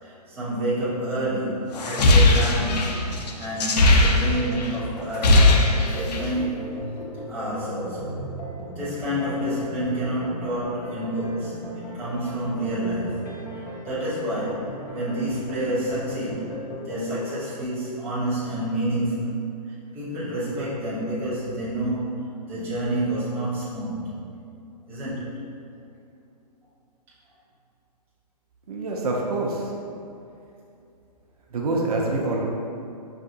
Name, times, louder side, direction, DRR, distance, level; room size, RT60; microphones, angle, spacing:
voice 1, 0.0-6.7 7.3-8.2 8.7-13.3 13.5-16.5 16.8-19.3 19.9-24.1 24.9-25.5, right 1 dB, 10° right, -11 dB, 0.6 m, -29 dB
sound 1, 1.7-4.7 5.0-6.3, left 2 dB, 75° left, 0.5 m, -18 dB
sound 2, 4.3-17.3, equal, 30° left, 0.6 m, -37 dB
voice 2, 28.7-29.7 31.5-32.4, right 2 dB, 65° right, -1 dB, 0.6 m, -26 dB
5.5 x 2.5 x 2.5 m, 2.6 s
hypercardioid pair, 165°, 21 cm